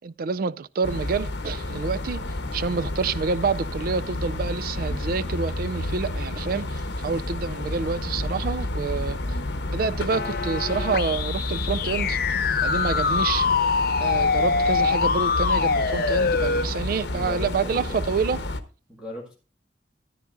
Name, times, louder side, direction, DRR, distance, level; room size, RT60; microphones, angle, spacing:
voice 1, 0.0-2.2 2.5-9.2 9.7-12.2 12.6-13.5 14.0-18.4, right 5 dB, 55° right, 0.4 m, -28 dB
sound 1, 0.8-18.6, left 1 dB, 80° left, 1.0 m, -30 dB
sound 2, 10.1-16.6, left 5 dB, 60° left, 0.8 m, -24 dB
voice 2, 17.1-18.0 18.9-19.3, left 1 dB, 5° right, 1.9 m, -38 dB
14.0 x 9.8 x 2.5 m
head